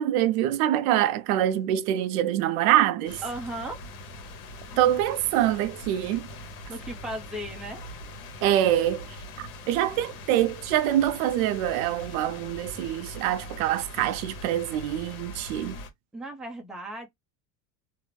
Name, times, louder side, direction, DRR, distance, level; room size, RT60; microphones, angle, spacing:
voice 1, 0.0-3.2 4.8-6.3 8.4-9.0 9.4-15.8, right 12 dB, 80° right, 0.5 m, -25 dB
sound 1, 3.1-15.9, left 1 dB, 90° left, 0.9 m, -42 dB
voice 2, 3.2-3.8 6.7-7.9 16.1-17.1, right 1 dB, ahead, 0.4 m, -36 dB
2.4 x 2.0 x 3.0 m
supercardioid pair, 130°, 41 cm